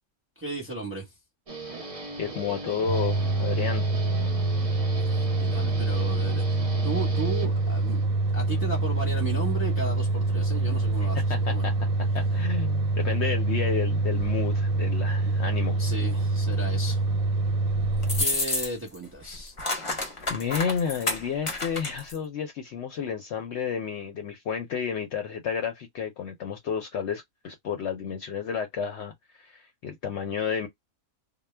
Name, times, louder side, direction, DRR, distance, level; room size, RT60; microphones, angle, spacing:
voice 1, 0.4-1.1 5.0-5.1 5.4-6.4 6.8-8.1 8.3-11.6 15.8-17.0 18.2-19.5, right 3 dB, 10° right, 0.8 m, -35 dB
Guitar, 1.5-8.0, right 3 dB, 35° right, 0.6 m, -38 dB
voice 2, 2.2-3.9 11.0-11.7 12.1-15.8 20.3-30.7, left 7 dB, 65° left, 0.8 m, -31 dB
sound 1, 2.9-18.3, right 2 dB, 90° right, 1.0 m, -25 dB
sound 2, 18.0-19.0 19.2-22.2, left 2 dB, 35° left, 0.5 m, -29 dB
2.2 x 2.1 x 3.2 m
omnidirectional pair, 1.4 m